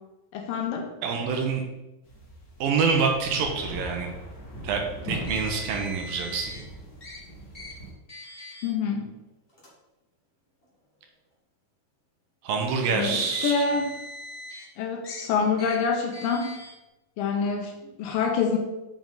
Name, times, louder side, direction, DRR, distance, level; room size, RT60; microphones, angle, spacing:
voice 1, 0.3-0.9 8.6-9.1 12.9-13.9 14.8-16.6 17.2-18.6, left 5 dB, 75° left, 3 dB, 2.3 m, -26 dB
voice 2, 1.0-1.6 2.6-4.1 4.6-6.5 12.4-13.6, right 5 dB, 75° right, 3 dB, 2.6 m, -26 dB
sound 1, 2.0-7.9, right 1 dB, 40° left, 1.5 m, -40 dB
Car, 5.3-6.6 7.0-7.2 7.5-7.7 8.1-8.7 9.5-9.7 10.6-10.7 13.0-14.6 15.0-15.2 15.6-15.8 16.1-16.7, left 2 dB, 55° left, 0.6 m, -41 dB
7.2 x 5.9 x 3.9 m, 1.0 s
omnidirectional pair, 4.4 m